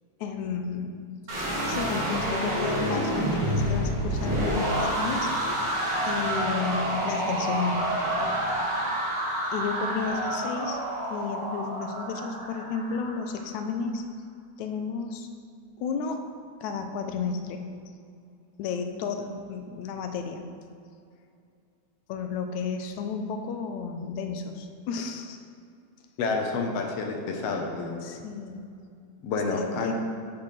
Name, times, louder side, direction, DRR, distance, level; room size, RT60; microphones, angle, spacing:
voice 1, 0.2-1.0 1.7-5.6 6.1-7.9 9.5-10.8 11.1-14.0 14.6-15.3 15.8-16.2 16.6-17.7 18.6-20.4 22.1-25.4 28.0-28.8 29.5-29.9, left 5 dB, 85° left, 5 dB, 2.1 m, -32 dB
sound 1, 1.3-13.3, right 1 dB, 65° right, 3.0 m, -28 dB
voice 2, 26.2-28.0 29.2-29.9, left 4 dB, 70° left, 2 dB, 1.8 m, -29 dB
9.5 x 8.3 x 3.3 m, 2.4 s
omnidirectional pair, 3.3 m